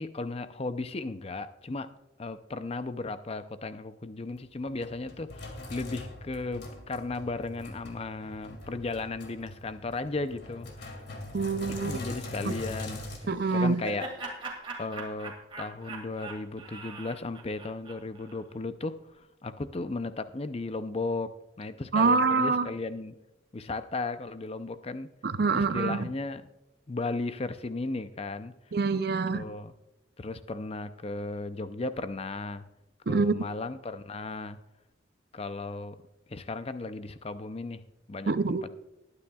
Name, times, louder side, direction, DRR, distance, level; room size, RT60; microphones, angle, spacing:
voice 1, 0.0-1.9 2.2-11.0 11.8-14.1 14.8-23.1 23.5-25.1 25.5-26.5 26.9-28.5 29.3-29.7 30.2-32.6 33.1-34.6 35.3-36.0 36.3-37.8 38.1-38.7, left 3 dB, 30° left, 11 dB, 0.5 m, -35 dB
Sink (filling or washing), 4.3-13.2, left 2 dB, 60° left, 2.4 m, -42 dB
voice 2, 11.3-11.9 13.3-13.8 21.9-22.7 25.2-26.0 28.7-29.4 33.1-33.3 38.3-38.6, right 4 dB, 55° right, 12 dB, 0.6 m, -25 dB
Laughter, 13.2-18.4, right 3 dB, 30° right, 2.0 m, -41 dB
20.5 x 9.8 x 2.3 m, 0.94 s
head